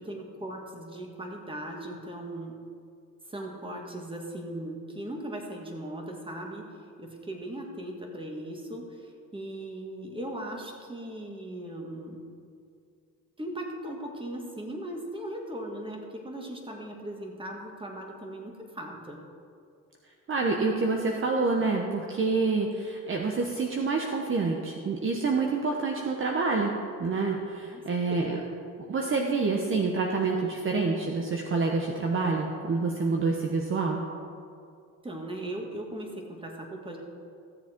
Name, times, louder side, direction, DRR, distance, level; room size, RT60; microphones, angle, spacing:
voice 1, 0.0-2.6 3.3-12.2 13.4-19.2 27.7-28.4 35.0-37.0, right 1 dB, 15° right, 1 dB, 2.0 m, -38 dB
voice 2, 20.3-28.4 28.9-34.0, right 4 dB, 45° right, 1 dB, 1.1 m, -27 dB
15.5 x 7.3 x 4.5 m, 2.4 s
cardioid pair, 90°, 30 cm